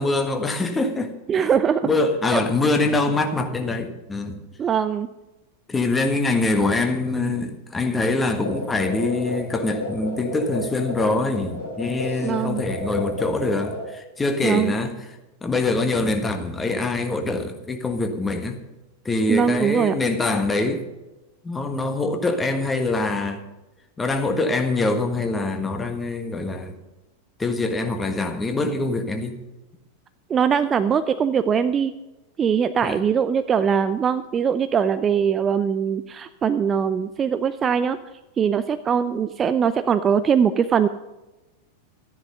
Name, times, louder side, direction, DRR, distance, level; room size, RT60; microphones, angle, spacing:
voice 1, 0.0-1.5 1.8-4.4 5.7-14.9 15.4-18.6 19.0-20.8 21.4-23.4 24.0-26.8 27.4-29.4 32.8-33.0, left 2 dB, 15° left, 1.6 m, -24 dB
voice 2, 1.3-1.9 2.3-2.4 4.6-5.1 12.2-12.6 14.4-14.7 19.3-19.9 30.3-31.9 32.4-38.0 38.4-40.9, right 7 dB, 25° right, 0.5 m, -21 dB
sound 1, 8.3-13.9, left 2 dB, 75° left, 4.2 m, -31 dB
13.0 x 10.5 x 5.6 m
figure-of-eight pair, 90°, 0 cm